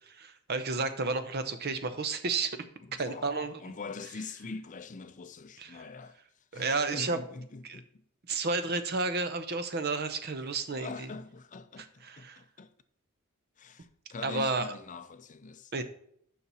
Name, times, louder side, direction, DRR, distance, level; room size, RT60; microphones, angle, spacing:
voice 1, 0.2-2.6 3.0-3.6 5.6-5.8 6.5-7.2 7.6-7.8 8.3-11.1 12.0-12.4 14.2-14.7 15.7-15.8, right 3 dB, 45° right, 0.7 m, -31 dB
voice 2, 2.8-8.0 10.7-12.7 13.6-15.8, left 4 dB, 35° left, 0.5 m, -43 dB
7.0 x 5.9 x 5.5 m
head